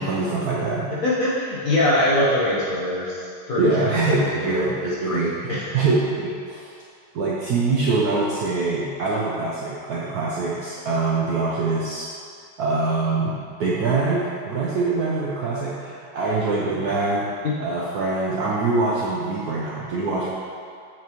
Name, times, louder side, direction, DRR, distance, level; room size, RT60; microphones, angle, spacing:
voice 1, 0.0-0.9 3.6-6.7 7.1-12.1 12.6-17.3 17.6-20.3, right 3 dB, 70° right, -5 dB, 0.9 m, -24 dB
voice 2, 1.0-5.8 17.4-17.6, left 1 dB, 55° left, -8 dB, 1.0 m, -23 dB
7.1 x 6.1 x 3.0 m, 2.3 s
omnidirectional pair, 2.4 m